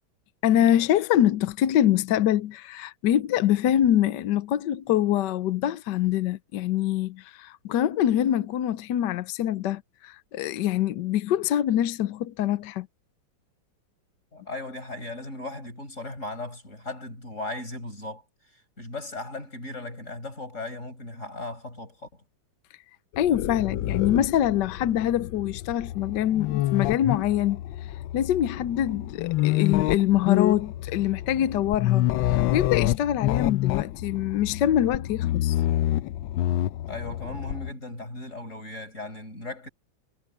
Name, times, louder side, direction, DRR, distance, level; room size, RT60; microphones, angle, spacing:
voice 1, 0.4-12.9 23.2-27.6 28.1-35.6, left 11 dB, 70° left, 1.3 m, -24 dB
voice 2, 14.3-18.2 18.5-22.2 36.9-39.7, left 2 dB, 35° left, 6.4 m, -37 dB
sound 1, 23.1-37.7, left 14 dB, 85° left, 1.4 m, -28 dB
omnidirectional pair, 2.1 m